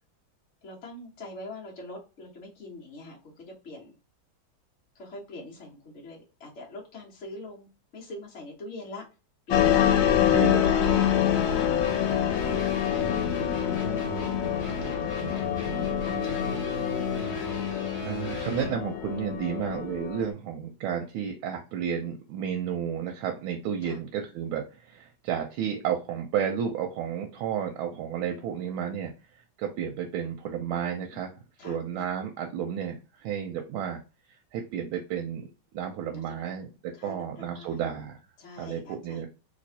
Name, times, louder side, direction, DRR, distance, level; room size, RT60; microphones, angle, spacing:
voice 1, 0.6-3.9 4.9-9.1 10.8-11.6 12.5-13.9 14.7-15.3 16.0-17.6 23.8-24.0 31.1-31.2 31.6-32.1 36.1-36.4 36.9-37.8 38.4-39.2, left 2 dB, 40° left, -2 dB, 1.3 m, -44 dB
sound 1, 9.5-20.3, left 10 dB, 85° left, 1.4 m, -26 dB
voice 2, 10.3-10.8 18.0-29.1 29.6-31.3 31.6-34.0 34.5-35.5 35.7-38.2 38.6-39.3, right 8 dB, 90° right, 3 dB, 1.4 m, -32 dB
sound 2, 10.8-18.7, right 1 dB, 20° left, 1.3 m, -36 dB
3.3 x 3.0 x 2.7 m, 0.31 s
omnidirectional pair, 2.2 m